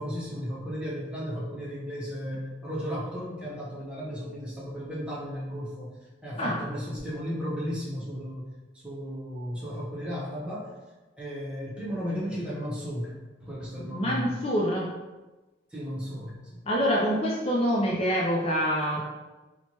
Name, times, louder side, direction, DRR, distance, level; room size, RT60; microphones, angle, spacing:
voice 1, 0.0-5.9 6.2-8.5 8.7-10.7 11.2-14.3 15.7-16.6 18.9-19.0, equal, 5° right, -7 dB, 0.9 m, -35 dB
voice 2, 13.9-14.9 16.7-19.0, equal, 35° left, -3 dB, 0.5 m, -26 dB
4.3 x 2.2 x 2.9 m, 1.2 s
head